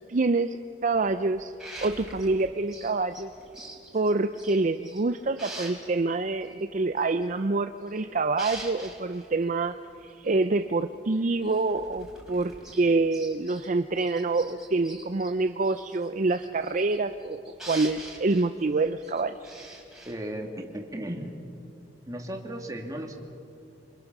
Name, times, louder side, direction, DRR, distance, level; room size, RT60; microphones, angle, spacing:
voice 1, 0.1-0.6 0.8-1.5 1.8-3.3 3.9-9.7 10.0-17.4 17.7-19.4, right 3 dB, 45° right, 9 dB, 0.5 m, -26 dB
sound 1, 0.9-5.1 5.4-6.0 6.4-6.5 7.0-8.0 8.3-9.3 10.1-10.2 10.4-10.5 11.2-13.7 14.0-20.1, right 2 dB, 5° right, 4.0 m, -44 dB
voice 2, 20.1-21.3 22.1-23.2, right 1 dB, 20° right, 2 dB, 2.2 m, -35 dB
27.0 x 25.0 x 6.1 m, 2.7 s
head